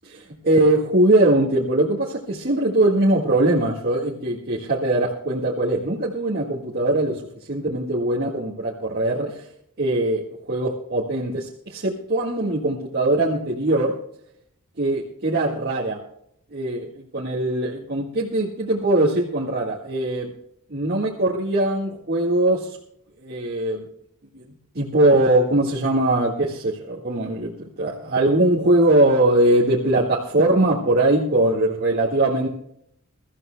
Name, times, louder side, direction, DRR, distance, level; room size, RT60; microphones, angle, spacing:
voice 1, 0.0-7.2 7.5-9.5 9.8-10.2 10.5-13.9 14.8-16.0 16.5-20.3 20.7-22.8 23.2-23.8 24.3-24.4 24.7-32.5, right 1 dB, 45° right, -4 dB, 1.8 m, -21 dB
22.5 x 14.0 x 2.2 m, 0.71 s
head